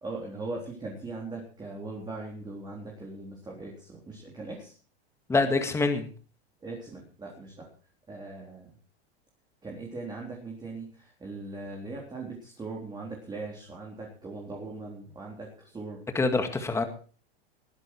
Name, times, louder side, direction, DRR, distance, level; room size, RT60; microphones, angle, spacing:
voice 1, 0.0-4.7 6.6-7.7 8.1-8.7 9.6-10.9 11.2-16.0, right 3 dB, 15° right, -2 dB, 3.9 m, -40 dB
voice 2, 5.3-6.1 16.1-16.9, left 3 dB, 10° left, 6 dB, 2.0 m, -25 dB
20.5 x 10.5 x 4.7 m, 0.40 s
supercardioid pair, 135°, 31 cm